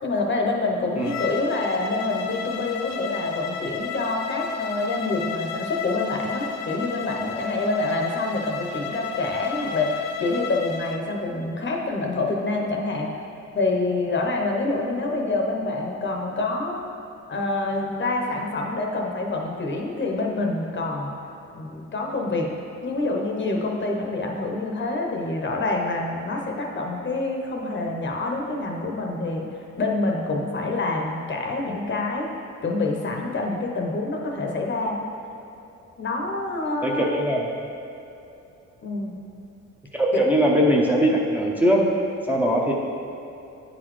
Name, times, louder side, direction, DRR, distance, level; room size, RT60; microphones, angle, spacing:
voice 1, 0.0-13.1 13.5-16.8 17.3-21.1 21.5-22.5 22.8-29.4 29.8-32.3 32.6-35.0 36.0-37.1 38.8-39.2, left 2 dB, 40° left, 1 dB, 0.8 m, -26 dB
Bowed string instrument, 1.0-11.0, left 6 dB, 60° left, 0.5 m, -33 dB
voice 2, 36.8-37.5 39.9-41.9 42.3-42.7, equal, 5° right, -3 dB, 0.6 m, -20 dB
8.5 x 4.0 x 3.1 m, 2.8 s
cardioid pair, 90°, 30 cm